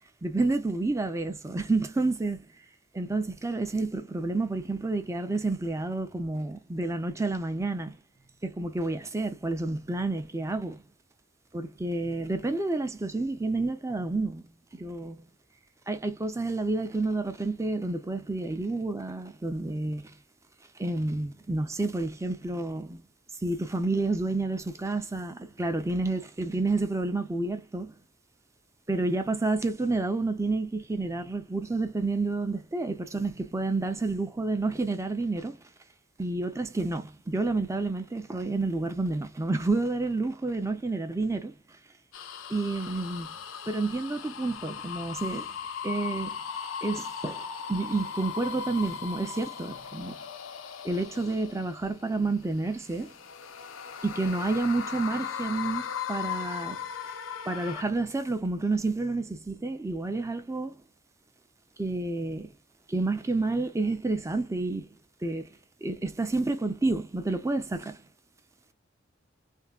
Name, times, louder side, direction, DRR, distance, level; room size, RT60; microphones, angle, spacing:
voice 1, 0.2-2.4 2.9-8.0 8.4-10.8 11.5-14.4 14.7-15.2 15.9-20.1 20.8-23.0 23.4-27.9 28.9-35.6 36.2-41.6 42.5-43.3 43.7-45.5 45.8-46.4 46.8-50.2 50.8-53.1 54.0-56.8 57.5-60.7 61.8-62.5 62.9-64.9 65.2-68.0, right 2 dB, 15° right, 0.5 m, -29 dB
sound 1, 42.1-52.0 52.6-57.8, left 7 dB, 75° left, 0.4 m, -38 dB
3.4 x 2.1 x 2.3 m
head